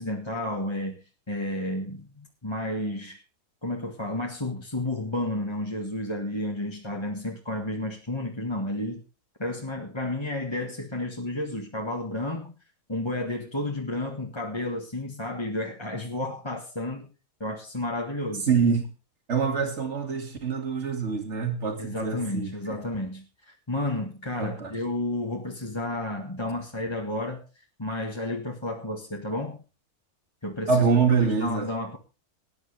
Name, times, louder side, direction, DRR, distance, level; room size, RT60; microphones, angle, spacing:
voice 1, 0.0-3.2 3.6-9.0 9.4-12.6 12.9-17.1 17.4-18.5 21.8-29.6 30.4-30.9 31.2-32.0, left 1 dB, 15° left, 1.8 m, -32 dB
voice 2, 18.5-18.9 19.3-22.5 24.4-24.7 30.7-31.7, right 5 dB, 45° right, 2.7 m, -25 dB
19.0 x 11.0 x 3.4 m
omnidirectional pair, 1.6 m